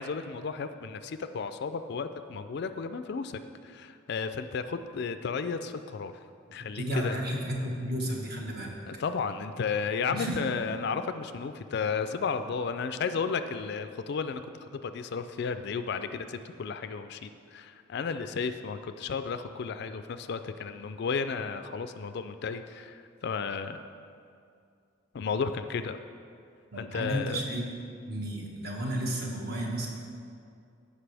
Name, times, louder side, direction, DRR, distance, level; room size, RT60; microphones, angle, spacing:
voice 1, 0.0-6.1 6.5-7.2 8.8-14.4 14.7-23.9 25.1-26.0 26.8-27.4, left 5 dB, 55° left, 10 dB, 0.3 m, -33 dB
voice 2, 6.7-8.7 10.1-10.4 26.7-27.6 28.1-29.9, right 1 dB, 50° right, -1 dB, 1.3 m, -32 dB
15.5 x 5.4 x 3.4 m, 2.4 s
head